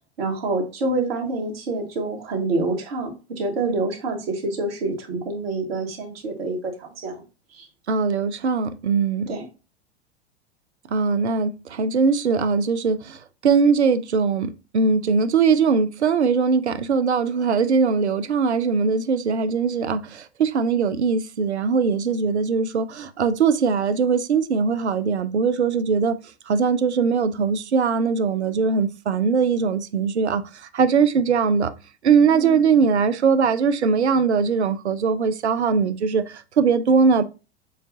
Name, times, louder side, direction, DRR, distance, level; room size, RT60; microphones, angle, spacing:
voice 1, 0.2-7.2 7.5-7.7 9.3-9.4 32.3-32.6, right 2 dB, 60° right, 1.6 m, -27 dB
voice 2, 7.9-9.3 10.9-26.2 26.5-31.7 32.0-37.2, right 5 dB, 80° right, 0.6 m, -21 dB
7.0 x 2.4 x 2.6 m
figure-of-eight pair, 90°, 33 cm